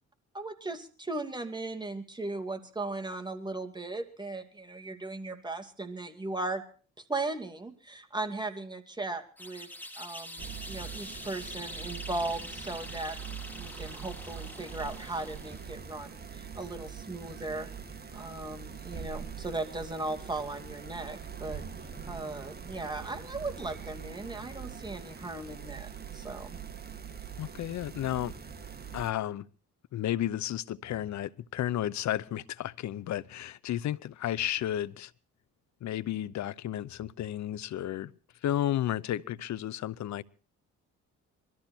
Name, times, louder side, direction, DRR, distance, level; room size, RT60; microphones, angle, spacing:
voice 1, 0.3-6.6 7.0-9.7 10.0-13.2 13.5-17.7 18.1-21.6 22.1-26.6, right 2 dB, 15° right, 2.6 m, -37 dB
sound 1, 9.4-15.7, left 1 dB, 5° left, 2.6 m, -44 dB
sound 2, 10.4-29.1, right 7 dB, 30° right, 1.9 m, -43 dB
voice 2, 27.4-28.3 28.9-29.5 29.9-35.1 35.8-38.1 38.4-40.2, left 12 dB, 65° left, 0.8 m, -32 dB
22.0 x 13.5 x 4.5 m
cardioid pair, 90°, 30 cm